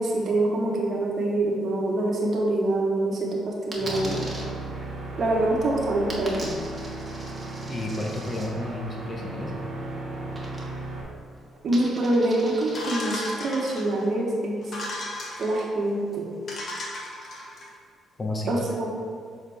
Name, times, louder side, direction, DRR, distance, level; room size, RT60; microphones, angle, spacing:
voice 1, 0.0-4.3 5.2-6.5 11.6-14.6 15.4-16.3 18.5-18.9, right 1 dB, 55° right, -2 dB, 1.2 m, -25 dB
Coin (dropping), 3.7-4.4 6.1-8.5 10.3-11.0 11.3-13.3, right 1 dB, 20° right, 1.4 m, -41 dB
sound 1, 3.7-11.0, right 2 dB, 75° right, 1.4 m, -35 dB
voice 2, 7.7-9.5 18.2-18.6, left 1 dB, 35° left, 0 dB, 1.1 m, -31 dB
sound 2, 12.7-14.1 14.6-15.6 16.1-16.2 16.5-17.7, left 1 dB, 55° left, 1.3 m, -35 dB
6.9 x 4.2 x 3.4 m, 2.3 s
cardioid pair, 90°, 0 cm